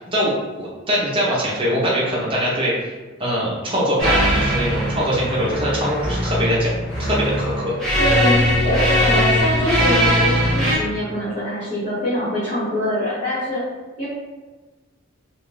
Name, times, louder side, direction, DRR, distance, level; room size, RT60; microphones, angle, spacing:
voice 1, 0.1-2.7 3.2-6.7 7.0-7.7, equal, 25° right, -6 dB, 0.8 m, -22 dB
sound 1, 4.0-10.8, equal, 5° left, 0.9 m, -20 dB
voice 2, 8.0-13.6 14.0-14.1, equal, 35° left, -11 dB, 0.8 m, -23 dB
2.5 x 2.4 x 3.2 m, 1.3 s
head